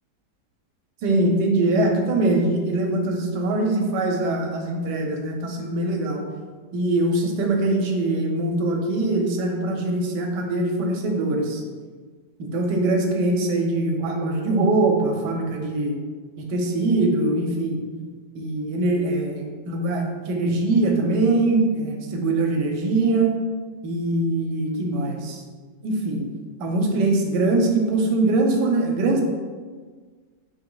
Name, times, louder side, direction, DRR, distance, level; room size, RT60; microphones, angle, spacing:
voice 1, 1.0-6.2 6.7-11.6 12.4-16.0 16.4-17.8 18.3-23.4 23.8-25.4 25.8-26.3 26.6-29.2, right 2 dB, 80° right, 2 dB, 1.2 m, -22 dB
3.6 x 3.0 x 3.8 m, 1.5 s
omnidirectional pair, 1.8 m